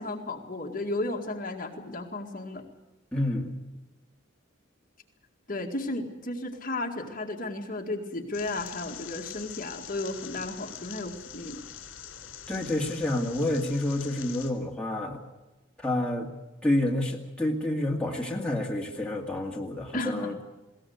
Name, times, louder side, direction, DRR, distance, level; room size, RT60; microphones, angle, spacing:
voice 1, 0.0-2.7 5.5-11.6 19.9-20.4, left 2 dB, 40° left, 2 dB, 2.1 m, -34 dB
voice 2, 3.1-3.5 12.5-15.2 15.8-16.3 16.6-20.3, left 1 dB, 5° left, -2 dB, 2.3 m, -28 dB
sound 1, 8.3-14.5, left 9 dB, 75° left, 3.4 m, -44 dB
21.0 x 18.0 x 8.0 m, 1.1 s
head